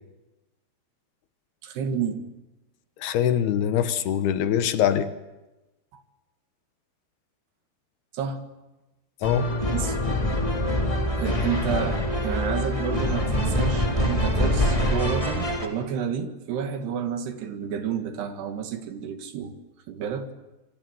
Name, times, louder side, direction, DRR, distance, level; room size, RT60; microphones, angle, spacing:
voice 1, 1.6-2.2 5.9-6.0 8.1-8.4 9.7-10.0 11.2-19.5 19.9-20.3, right 7 dB, 80° right, 6 dB, 4.1 m, -30 dB
voice 2, 3.0-5.1 9.2-9.5, left 9 dB, 75° left, 10 dB, 3.1 m, -23 dB
sound 1, 9.2-15.7, left 1 dB, 10° left, 2.7 m, -25 dB
28.0 x 24.5 x 7.9 m, 1.0 s
omnidirectional pair, 4.7 m